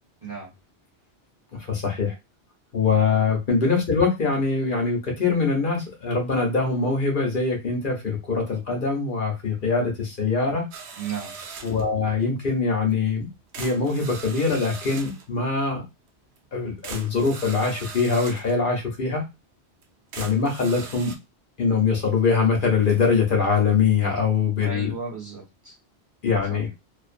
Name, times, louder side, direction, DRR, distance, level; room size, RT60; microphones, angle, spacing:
voice 1, 0.2-0.5 3.1-3.2 11.0-11.3 24.6-25.7 26.5-26.6, right 4 dB, 30° right, -1 dB, 1.1 m, -34 dB
voice 2, 1.5-2.1 2.7-10.7 11.6-13.3 13.6-15.8 16.5-19.2 20.2-21.1 21.6-24.9 26.2-26.7, left 4 dB, 55° left, 1 dB, 0.9 m, -23 dB
sound 1, 10.7-11.9 12.9-13.0 13.5-15.3 16.4-16.5 16.8-18.6 19.1-19.2 19.8-19.9 20.1-21.2, right 5 dB, 75° right, 0.8 m, -40 dB
2.5 x 2.3 x 2.4 m, 0.23 s
omnidirectional pair, 1.1 m